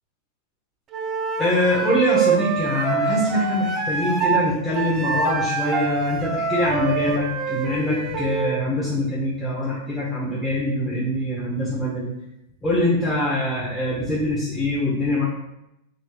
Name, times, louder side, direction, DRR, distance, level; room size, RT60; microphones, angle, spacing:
Wind instrument woodwind instrument, 0.9-4.5 4.7-8.6, right 5 dB, 30° right, 0.4 m, -25 dB
voice 1, 1.4-12.1 12.6-15.3, left 1 dB, 10° left, -7 dB, 0.7 m, -23 dB
3.1 x 2.3 x 3.5 m, 0.86 s
supercardioid pair, 135°, 0 cm